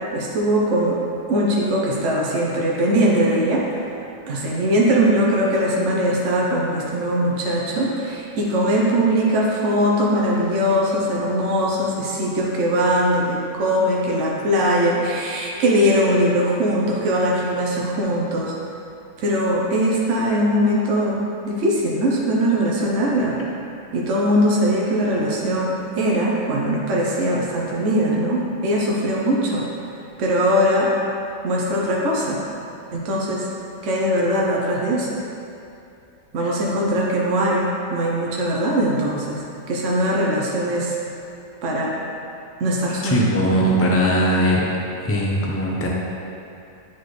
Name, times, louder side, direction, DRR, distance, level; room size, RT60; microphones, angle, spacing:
voice 1, 0.1-1.0 1.3-3.6 4.3-18.5 19.2-23.4 23.9-29.6 30.2-30.9 31.4-32.4 32.9-33.5 33.8-35.2 36.3-39.4 39.7-41.0 41.6-42.0 42.6-43.2, equal, 65° right, -3 dB, 1.1 m, -21 dB
voice 2, 43.0-44.6 45.0-45.9, equal, 15° left, -3 dB, 0.4 m, -19 dB
8.6 x 4.2 x 3.2 m, 2.7 s
omnidirectional pair, 1.4 m